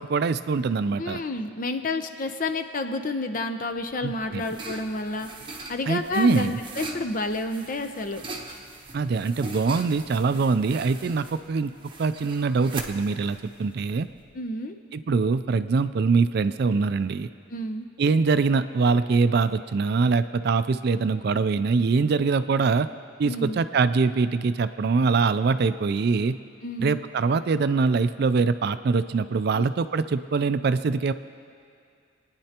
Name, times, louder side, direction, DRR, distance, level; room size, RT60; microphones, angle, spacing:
voice 1, 0.0-1.2 4.0-4.5 5.9-6.6 8.9-11.7 12.0-14.1 14.9-17.3 18.0-22.9 23.2-26.4 26.8-31.1, right 4 dB, 55° right, 12 dB, 0.4 m, -23 dB
voice 2, 1.0-5.3 5.7-8.2 14.3-14.8 17.5-17.9 23.2-23.6 26.6-27.0 29.5-29.7, left 2 dB, 45° left, 6 dB, 0.7 m, -30 dB
sound 1, 3.8-14.4, right 2 dB, 25° right, 0.9 m, -41 dB
27.5 x 9.7 x 2.9 m, 2.3 s
head